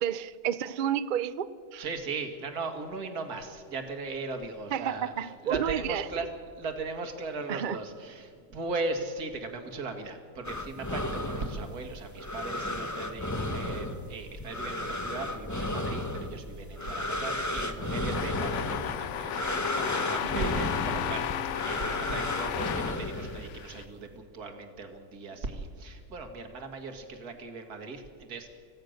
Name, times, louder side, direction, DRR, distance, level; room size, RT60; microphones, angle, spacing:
voice 1, 0.0-1.5 1.7-1.8 4.7-6.0 7.5-7.8 20.3-20.5, right 9 dB, 85° right, 14 dB, 0.4 m, -30 dB
voice 2, 1.8-6.3 6.6-21.3 21.6-28.5, right 3 dB, 60° right, 6 dB, 2.3 m, -38 dB
sound 1, 10.4-23.7, left 1 dB, 10° left, 1.1 m, -34 dB
sound 2, 18.1-23.8, left 10 dB, 65° left, 0.7 m, -34 dB
26.0 x 16.5 x 6.5 m, 2.2 s
omnidirectional pair, 1.9 m